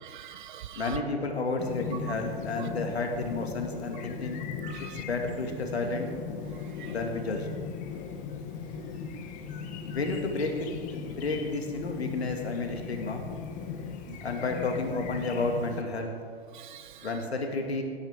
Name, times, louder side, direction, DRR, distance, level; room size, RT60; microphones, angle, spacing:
voice 1, 0.0-1.0 4.6-4.9 6.8-6.9 14.1-14.2 16.5-17.1, right 11 dB, 50° right, 11 dB, 0.7 m, -43 dB
voice 2, 0.7-4.4 4.9-6.1 6.9-7.5 9.9-13.2 14.2-16.2 17.0-17.8, left 3 dB, 90° left, 2 dB, 2.2 m, -31 dB
Chirp tweet, 1.6-15.8, left 6 dB, 25° left, 0.9 m, -38 dB
17.0 x 10.0 x 3.7 m, 2.1 s
hypercardioid pair, 130°, 31 cm